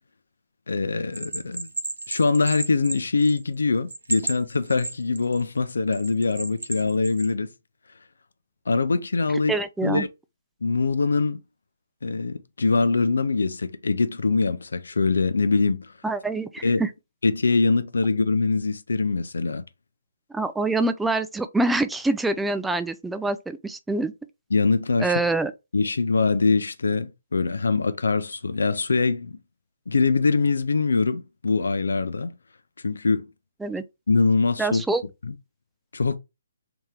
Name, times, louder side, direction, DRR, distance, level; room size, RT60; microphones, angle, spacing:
voice 1, 0.7-1.7 2.1-7.5 8.7-9.5 9.8-10.1 10.6-11.4 12.0-15.9 16.6-16.8 17.2-19.6 24.5-25.1 25.7-29.3 29.9-32.4 32.8-33.3 34.1-34.8 35.2-35.3 35.9-36.2, left 4 dB, 75° left, 0.5 m, -23 dB
Bell, 1.1-3.5 3.9-5.4 5.9-7.3, right 2 dB, 80° right, 1.0 m, -32 dB
voice 2, 9.5-10.1 16.0-16.9 20.3-24.1 25.0-25.5 33.6-33.8 34.6-35.0, right 2 dB, 5° right, 0.3 m, -25 dB
3.5 x 2.9 x 3.3 m
figure-of-eight pair, 140°, 0 cm